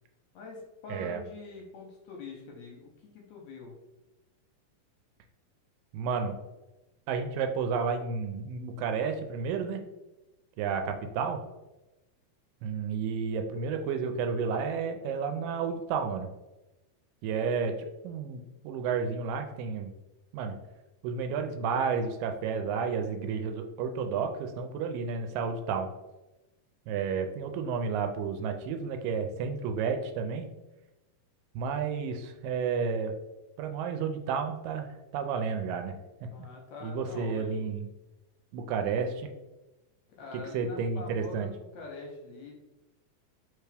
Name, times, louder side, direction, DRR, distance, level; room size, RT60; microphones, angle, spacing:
voice 1, 0.3-3.8 36.3-37.7 40.2-42.6, left 3 dB, 75° left, 0 dB, 1.7 m, -45 dB
voice 2, 5.9-6.4 7.1-9.8 10.6-11.4 12.6-16.3 17.2-19.9 20.3-20.6 21.0-25.9 26.9-30.5 31.6-33.1 33.6-36.0 36.2-36.3 36.8-37.8 38.5-39.3 40.3-41.5, right 5 dB, 85° right, 6 dB, 2.1 m, -31 dB
4.7 x 3.4 x 3.3 m, 1.0 s
omnidirectional pair, 3.9 m